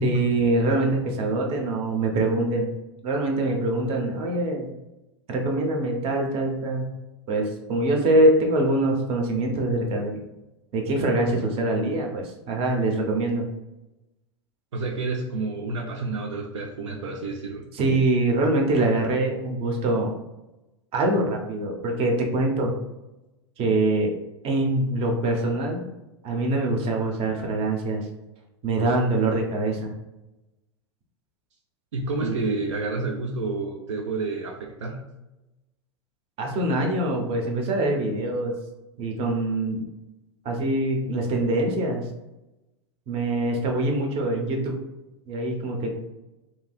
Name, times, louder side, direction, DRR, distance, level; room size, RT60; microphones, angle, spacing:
voice 1, 0.0-2.7 3.0-4.7 5.3-6.9 7.3-10.2 10.7-13.5 17.7-20.1 20.9-22.8 23.6-24.1 24.4-25.8 26.2-28.1 28.6-29.9 32.2-32.3 36.4-38.6 39.0-39.9 40.4-42.1 43.1-44.8 45.3-46.0, right 2 dB, 40° right, 2 dB, 0.7 m, -24 dB
voice 2, 14.7-17.7 31.9-35.0, right 3 dB, 80° right, 2 dB, 0.4 m, -29 dB
3.1 x 2.7 x 2.3 m, 0.99 s
hypercardioid pair, 95°, 15 cm